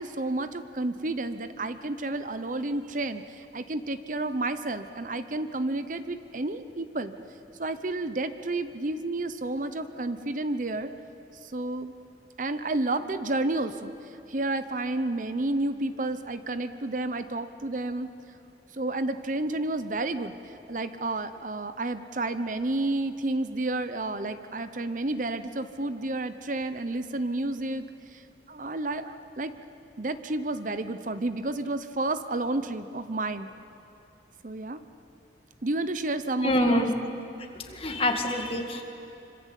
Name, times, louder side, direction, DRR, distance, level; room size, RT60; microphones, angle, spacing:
voice 1, 0.0-7.1 7.6-10.9 11.4-11.9 12.4-18.1 18.7-27.9 28.1-28.2 28.5-29.5 30.0-33.5 34.4-34.8 35.6-36.9, right 2 dB, 45° right, 11 dB, 0.8 m, -31 dB
voice 2, 36.4-36.9 37.6-38.8, left 1 dB, 30° left, 3 dB, 2.2 m, -26 dB
26.0 x 25.5 x 8.3 m, 2.9 s
head